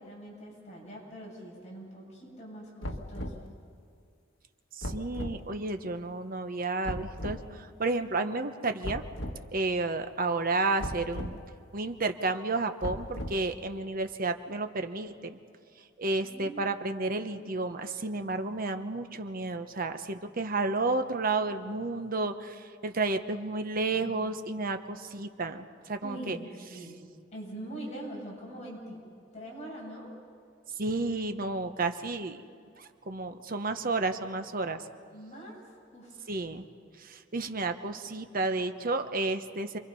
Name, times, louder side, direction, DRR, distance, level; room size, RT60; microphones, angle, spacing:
voice 1, 0.0-3.5 16.2-16.7 23.9-24.3 26.0-27.0 27.3-29.0 29.3-30.1 35.1-35.6 35.9-36.3, right 1 dB, 35° left, -3 dB, 7.9 m, -43 dB
sound 1, 2.8-3.5 4.8-5.4 6.8-7.4 8.8-9.4 10.8-11.4 12.8-13.5, left 1 dB, 80° left, 1.6 m, -37 dB
voice 2, 4.7-9.0 9.5-11.4 11.7-15.4 16.0-26.4 30.8-32.4 32.8-34.8 36.3-36.6 37.0-39.8, right 3 dB, 50° right, 7 dB, 1.1 m, -31 dB
29.0 x 23.0 x 5.5 m, 2.3 s
head